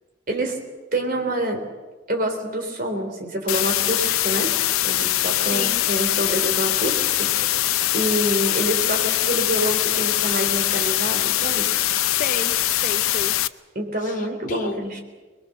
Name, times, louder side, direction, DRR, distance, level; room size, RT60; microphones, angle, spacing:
voice 1, 0.3-0.6 0.9-1.6 2.1-4.5 4.8-7.5 7.9-11.7 13.8-15.0, right 1 dB, 40° right, 3 dB, 3.7 m, -27 dB
sound 1, 3.5-13.5, left 14 dB, 80° left, 0.6 m, -22 dB
voice 2, 5.4-5.8 12.1-13.3 14.0-14.8, left 4 dB, 40° left, 4 dB, 0.8 m, -32 dB
23.5 x 21.0 x 6.7 m, 1.3 s
head